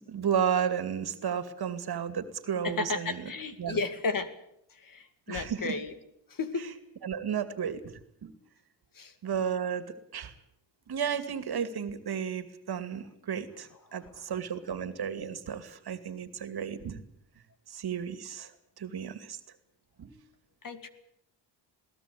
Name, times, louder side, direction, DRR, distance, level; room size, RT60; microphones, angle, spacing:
voice 1, 0.1-3.2 3.6-3.8 5.3-5.7 7.0-7.8 8.2-8.3 9.2-9.8 10.1-10.3 10.9-17.0 17.7-18.5 18.8-19.4 20.0-20.1, right 7 dB, 55° right, 12 dB, 2.4 m, -33 dB
voice 2, 2.6-4.3 4.7-5.9 6.3-6.7 8.9-9.1 13.9-14.3 20.6-20.9, left 4 dB, 45° left, 11 dB, 2.3 m, -34 dB
21.5 x 18.0 x 8.5 m, 0.75 s
cardioid pair, 90°, 44 cm